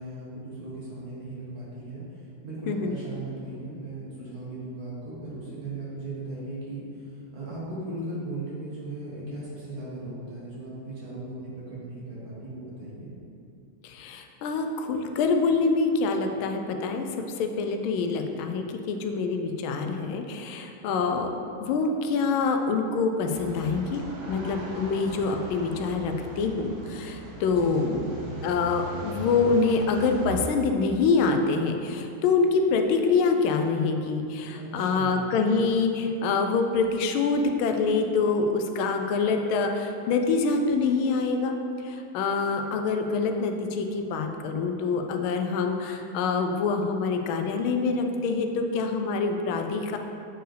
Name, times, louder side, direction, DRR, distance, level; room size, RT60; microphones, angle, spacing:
voice 1, 0.0-13.1 27.5-28.1 34.5-35.3, right 2 dB, 50° right, -7 dB, 1.8 m, -37 dB
voice 2, 13.8-21.3 21.6-24.0 24.3-28.0 28.4-41.5 41.8-50.0, left 4 dB, 90° left, 5 dB, 1.4 m, -25 dB
sound 1, 23.3-30.5, right 1 dB, 85° right, 1.9 m, -39 dB
7.6 x 4.6 x 3.3 m, 2.6 s
omnidirectional pair, 2.2 m